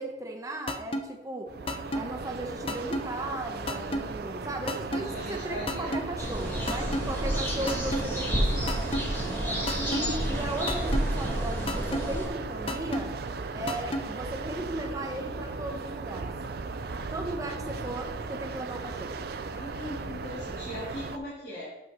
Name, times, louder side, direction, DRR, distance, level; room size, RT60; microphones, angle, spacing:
voice 1, 0.0-1.6 1.9-8.8 9.7-13.1 13.5-16.3 17.1-19.2, right 1 dB, 20° right, 2 dB, 0.9 m, -36 dB
sound 1, 0.7-1.0 1.7-2.0 2.7-3.0 3.7-4.0 4.7-5.0 5.7-6.0 6.7-7.0 7.7-8.0 8.7-9.0 9.7-10.0 10.7-11.0 11.7-12.0 12.7-13.0 13.7-14.0, left 1 dB, 30° left, 0.6 m, -29 dB
sound 2, 1.5-21.2, right 4 dB, 60° right, 0.5 m, -37 dB
voice 2, 3.8-4.1 4.9-5.9 6.4-6.9 9.2-9.6 19.5-21.7, left 1 dB, 65° left, -10 dB, 2.6 m, -40 dB
sound 3, 6.2-12.3, equal, 15° left, 1.5 m, -30 dB
8.0 x 6.4 x 3.0 m, 1.0 s
head